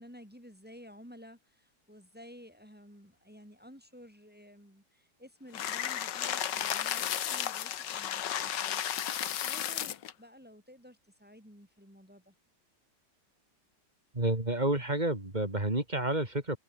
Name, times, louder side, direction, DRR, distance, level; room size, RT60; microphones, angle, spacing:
voice 1, 0.0-12.3, equal, 5° right, 6.7 m, -53 dB
sound 1, 5.5-10.1, left 10 dB, 85° left, 1.8 m, -33 dB
voice 2, 14.1-16.6, right 1 dB, 25° right, 3.5 m, -30 dB
omnidirectional pair, 1.9 m